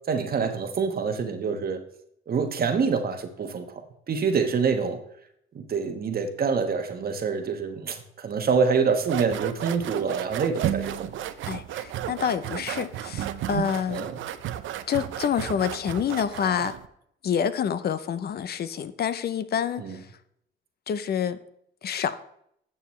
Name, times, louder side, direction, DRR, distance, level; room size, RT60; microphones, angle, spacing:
voice 1, 0.1-1.8 2.3-3.8 4.1-5.0 5.5-11.1 13.9-14.1 19.8-20.0, right 5 dB, 50° right, 1.3 m, -26 dB
sound 1, 9.0-16.9, right 11 dB, 75° right, 0.6 m, -33 dB
voice 2, 11.5-14.1 14.9-16.8 17.2-20.1 20.9-21.4 21.8-22.2, left 8 dB, 55° left, 0.6 m, -27 dB
13.0 x 7.0 x 3.2 m
cardioid pair, 90°, 20 cm